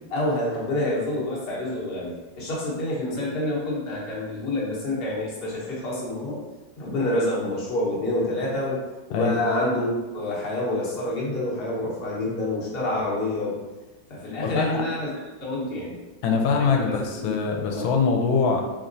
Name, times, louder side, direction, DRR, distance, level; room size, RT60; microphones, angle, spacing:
voice 1, 0.1-6.4 6.8-8.8 9.1-13.6 14.1-15.1 15.4-16.0 16.6-17.9, left 1 dB, 40° left, -6 dB, 1.0 m, -28 dB
voice 2, 14.4-14.8 16.2-18.8, left 5 dB, 85° left, 2 dB, 1.4 m, -23 dB
4.1 x 3.5 x 2.6 m, 1.2 s
omnidirectional pair, 2.1 m